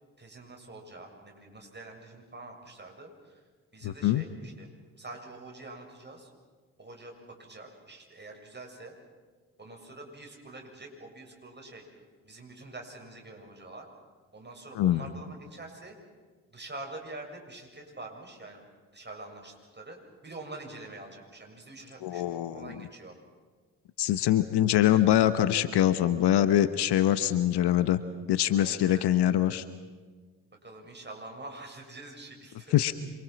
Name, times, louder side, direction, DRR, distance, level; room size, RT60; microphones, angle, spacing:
voice 1, 0.2-3.4 3.7-4.7 5.0-6.3 6.8-8.9 9.6-13.9 14.3-16.0 16.5-18.6 18.9-20.0 20.2-23.2 28.6-29.0 30.6-32.8, right 2 dB, 25° right, 1 dB, 7.1 m, -45 dB
voice 2, 3.8-4.2 14.8-15.0 22.0-22.7 24.0-28.0 28.3-29.6 32.7-32.9, left 12 dB, 60° left, 12 dB, 1.1 m, -24 dB
27.0 x 24.5 x 6.0 m, 1.5 s
hypercardioid pair, 40°, 45 cm